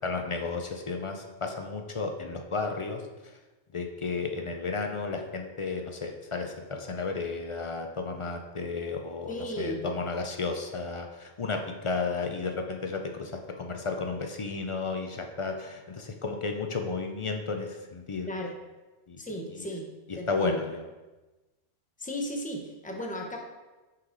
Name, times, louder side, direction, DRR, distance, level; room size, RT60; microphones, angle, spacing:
voice 1, 0.0-3.0 3.7-18.3 19.1-19.2 19.5-19.6 20.1-20.8, left 4 dB, 45° left, 4 dB, 0.4 m, -33 dB
voice 2, 9.3-9.8 18.3-18.5 19.2-19.9 20.2-20.6 22.0-23.4, equal, 10° left, 1 dB, 0.6 m, -35 dB
5.7 x 4.8 x 3.8 m, 1.2 s
omnidirectional pair, 1.1 m